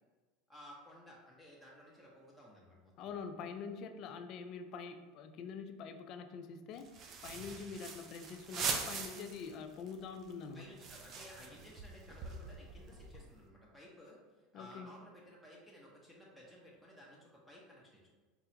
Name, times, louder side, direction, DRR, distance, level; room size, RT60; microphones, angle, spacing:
voice 1, 0.5-3.1 7.8-7.9 10.5-18.1, equal, ahead, -5 dB, 0.7 m, -56 dB
voice 2, 3.0-6.9 7.2-10.6 14.5-14.9, left 5 dB, 50° left, 8 dB, 0.3 m, -45 dB
sound 1, 6.8-9.5 9.9-10.0 10.2-13.4, right 5 dB, 40° right, 0.4 m, -42 dB
4.2 x 2.3 x 2.8 m, 1.3 s
supercardioid pair, 115°, 0 cm